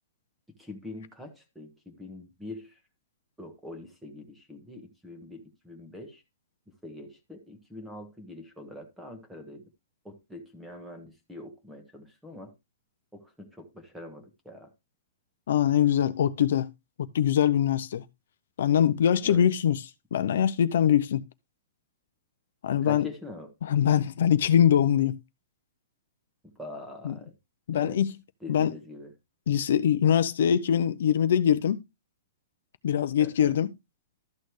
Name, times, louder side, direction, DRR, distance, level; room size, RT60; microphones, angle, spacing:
voice 1, 0.6-2.7 3.4-6.2 6.8-9.6 10.0-12.5 13.1-14.7 19.2-19.5 22.8-23.5 26.6-27.3 27.7-28.0 28.4-29.1 33.2-33.6, left 1 dB, 5° right, 1.3 m, -43 dB
voice 2, 15.5-16.7 17.0-18.0 18.6-19.8 20.1-21.2 22.6-23.1 23.6-25.2 27.0-27.2 27.7-28.1 28.5-28.8 29.5-31.8 32.8-33.7, left 9 dB, 60° left, 0.6 m, -23 dB
13.0 x 6.4 x 3.2 m
hypercardioid pair, 175°, 0 cm